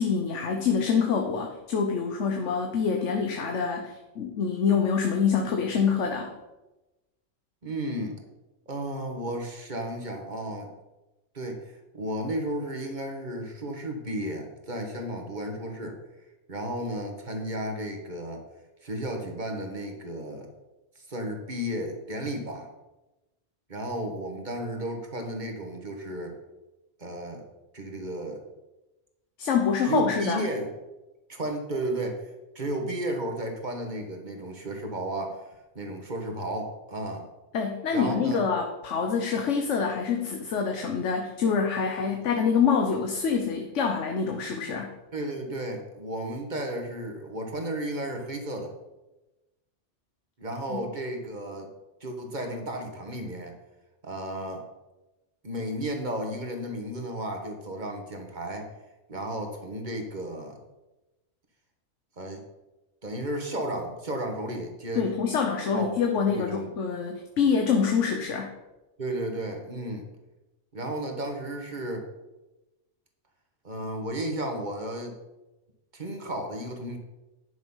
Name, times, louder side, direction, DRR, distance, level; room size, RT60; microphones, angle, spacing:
voice 1, 0.0-6.3 29.4-30.5 37.5-44.9 50.7-50.8 64.9-68.5, left 6 dB, 80° left, 3 dB, 1.3 m, -26 dB
voice 2, 7.6-8.2 8.7-10.7 11.3-16.0 16.5-18.4 18.8-20.5 20.9-22.7 23.7-26.4 27.0-27.4 27.7-28.4 29.8-30.7 31.3-32.2 32.5-35.4 35.7-37.3 37.9-38.4 45.1-48.7 50.4-51.7 52.0-53.5 54.0-54.6 55.4-58.7 59.1-60.6 62.2-62.4 63.0-65.1 65.7-66.0 66.3-66.7 69.0-70.1 70.7-72.1 73.6-75.1 75.9-77.0, right 1 dB, 40° right, 3 dB, 1.6 m, -33 dB
10.5 x 6.4 x 5.6 m, 1.0 s
omnidirectional pair, 1.2 m